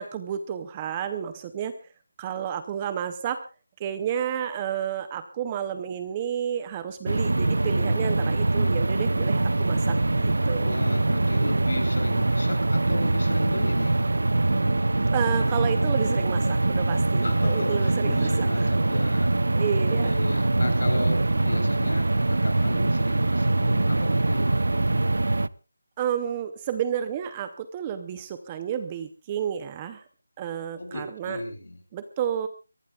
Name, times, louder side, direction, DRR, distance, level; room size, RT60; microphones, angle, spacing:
voice 1, 0.0-1.7 2.2-3.4 3.8-10.7 15.1-18.7 19.6-20.1 26.0-30.0 30.4-31.4 31.9-32.5, right 9 dB, 15° right, 11 dB, 0.7 m, -31 dB
sound 1, 7.1-25.5, right 2 dB, 75° right, 0.7 m, -23 dB
voice 2, 10.6-14.0 17.2-19.3 20.0-24.7 30.8-31.8, left 2 dB, 55° left, 4 dB, 7.6 m, -34 dB
23.0 x 19.0 x 2.4 m, 0.32 s
figure-of-eight pair, 175°, 0 cm